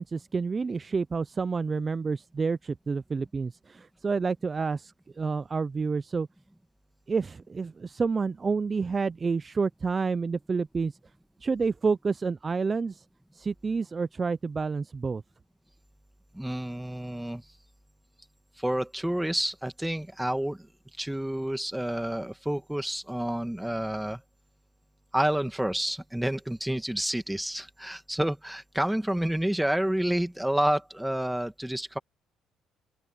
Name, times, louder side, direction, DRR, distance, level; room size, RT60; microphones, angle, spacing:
voice 1, 0.0-6.3 7.1-11.0 11.4-13.0 13.3-15.2, right 4 dB, 30° right, 0.5 m, -29 dB
voice 2, 16.3-17.4 18.6-20.7 21.0-24.2 25.1-32.0, right 1 dB, 5° right, 2.1 m, -29 dB
open air
cardioid pair, 95°, 0 cm